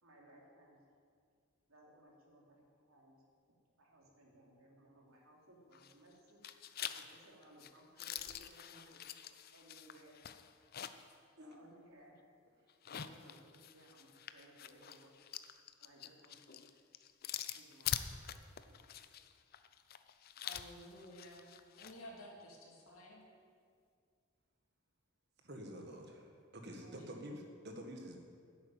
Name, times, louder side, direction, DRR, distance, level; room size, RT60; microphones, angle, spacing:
voice 1, 0.0-0.9 1.7-3.2 3.8-6.4 6.8-9.0 9.5-10.2 10.6-10.7 11.4-12.2 12.9-15.3 15.8-16.8 17.5-19.1, right 1 dB, 80° right, -1 dB, 2.9 m, -62 dB
sound 1, 5.7-6.1 6.4-11.1 11.5-11.6 12.7-22.0, left 9 dB, 45° left, 0.5 m, -45 dB
voice 2, 20.4-21.5 21.8-23.2 26.8-27.2, equal, 80° left, -2 dB, 3.0 m, -53 dB
voice 3, 25.4-28.2, equal, 50° right, 3 dB, 1.7 m, -48 dB
11.0 x 8.4 x 9.0 m, 2.2 s
head